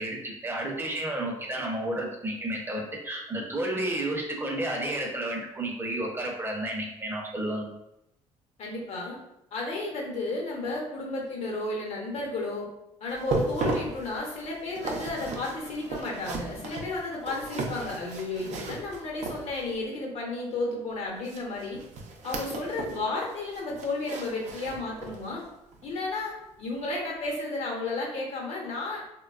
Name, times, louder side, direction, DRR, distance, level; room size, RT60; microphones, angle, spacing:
voice 1, 0.0-7.7, right 1 dB, 20° right, -1 dB, 0.7 m, -31 dB
voice 2, 8.6-9.2 9.5-12.7 13.0-21.8 22.2-25.4 25.8-29.0, left 2 dB, 60° left, -1 dB, 0.9 m, -33 dB
sound 1, 13.1-19.8 21.2-23.0 23.3-25.3 25.7-25.9 26.4-26.5, right 3 dB, 65° right, 0.5 m, -35 dB
3.0 x 2.2 x 2.4 m, 0.84 s
cardioid pair, 90°, 13 cm